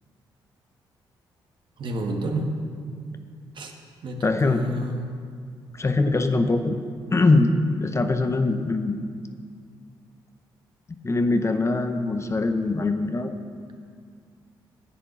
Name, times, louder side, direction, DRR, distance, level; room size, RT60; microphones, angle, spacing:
voice 1, 1.8-2.5 3.5-3.7 4.0-5.1, right 1 dB, 60° right, 2 dB, 1.4 m, -29 dB
voice 2, 4.2-4.7 5.8-6.8 7.1-9.0 11.0-13.3, left 2 dB, 30° left, 7 dB, 0.8 m, -22 dB
9.9 x 8.1 x 6.0 m, 2.1 s
cardioid pair, 65°, 9 cm